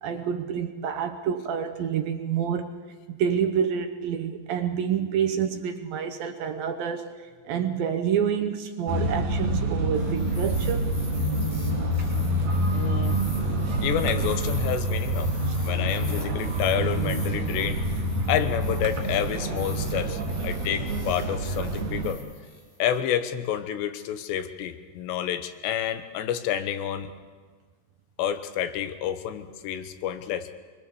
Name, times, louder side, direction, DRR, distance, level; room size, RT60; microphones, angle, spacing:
voice 1, 0.0-2.7 3.1-7.1 7.5-11.0, right 8 dB, 70° right, 2.4 m, -28 dB
sound 1, 8.9-22.1, right 1 dB, 50° right, 4.7 m, -27 dB
sound 2, 9.9-23.0, left 1 dB, 40° left, 7.3 m, -44 dB
voice 2, 12.7-13.2 13.8-15.3 15.6-17.8 18.3-22.2 22.8-27.1 28.2-30.5, left 10 dB, 90° left, 3.4 m, -29 dB
25.0 x 22.5 x 7.1 m
omnidirectional pair, 4.8 m